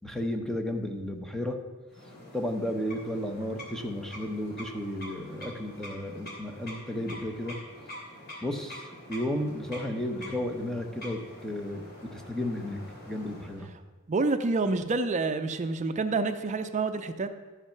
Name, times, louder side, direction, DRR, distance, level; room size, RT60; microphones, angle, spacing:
voice 1, 0.0-1.6 2.3-7.6 8.4-12.8 13.0-13.7, left 1 dB, ahead, 4 dB, 0.9 m, -33 dB
sound 1, 1.9-13.7, left 1 dB, 50° left, 2.6 m, -46 dB
voice 2, 14.1-17.3, right 3 dB, 35° right, 9 dB, 0.5 m, -28 dB
13.0 x 5.7 x 5.8 m, 1.3 s
head